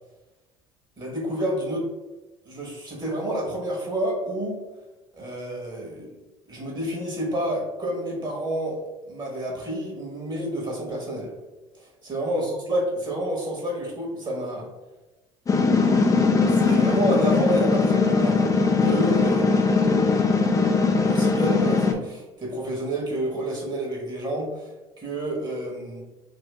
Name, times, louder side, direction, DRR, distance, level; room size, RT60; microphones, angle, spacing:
voice 1, 1.0-1.9 2.4-4.6 5.1-6.1 6.5-8.8 9.1-11.3 11.7-14.7 16.5-19.9 21.1-24.7 25.0-26.0, right 1 dB, 30° right, -1 dB, 1.2 m, -29 dB
sound 1, 15.5-21.9, left 4 dB, 20° left, 0.5 m, -20 dB
2.7 x 2.7 x 3.3 m, 1.1 s
hypercardioid pair, 65°, 15 cm